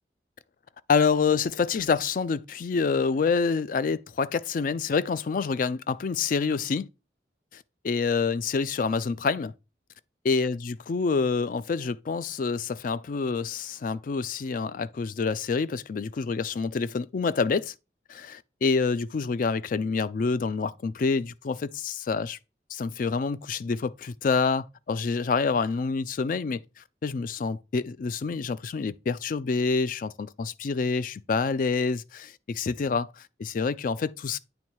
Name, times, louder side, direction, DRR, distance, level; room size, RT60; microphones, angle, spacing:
voice 1, 0.9-6.9 7.5-9.5 10.3-17.7 18.1-22.4 22.7-26.6 27.0-34.4, left 4 dB, 50° left, 0.4 m, -27 dB
8.8 x 3.1 x 4.6 m
head